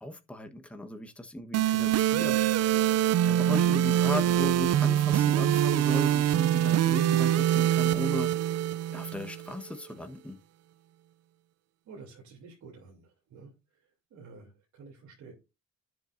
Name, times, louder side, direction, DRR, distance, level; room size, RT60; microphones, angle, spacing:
voice 1, 0.0-2.4 3.2-8.3 8.9-10.4, left 1 dB, 5° left, 1.2 m, -36 dB
sound 1, 1.5-9.5, right 11 dB, 55° right, 0.5 m, -24 dB
voice 2, 11.9-13.5 14.1-15.3, right 5 dB, 75° right, 3.0 m, -49 dB
10.0 x 7.6 x 2.6 m
cardioid pair, 90°, 30 cm